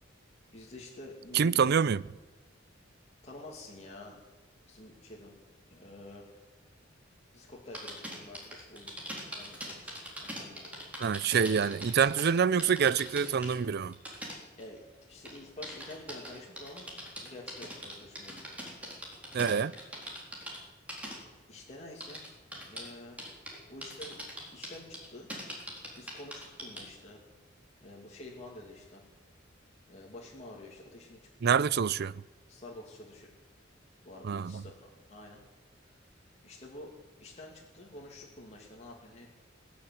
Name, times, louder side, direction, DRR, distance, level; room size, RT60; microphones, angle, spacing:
voice 1, 0.5-1.7 3.2-4.2 4.6-5.3 5.7-6.3 7.3-8.9 9.3-9.9 10.2-10.6 14.6-18.5 20.4-20.5 21.5-22.2 22.6-23.2 23.7-24.2 24.5-25.3 26.0-27.2 27.8-29.0 29.9-31.6 32.5-33.3 34.0-35.4 35.9-36.0 36.4-36.9 37.2-39.3, left 1 dB, 35° left, 2.6 m, -48 dB
voice 2, 1.3-2.0 11.0-13.9 19.3-19.7 31.4-32.1 34.2-34.6, right 6 dB, 55° right, 0.5 m, -26 dB
sound 1, 7.7-12.3 12.6-13.5 13.9-14.8 15.2-20.6 20.9-21.2 22.0-22.9 23.2-23.6 23.8-26.9, equal, 5° right, 4.1 m, -42 dB
21.0 x 7.2 x 9.5 m
head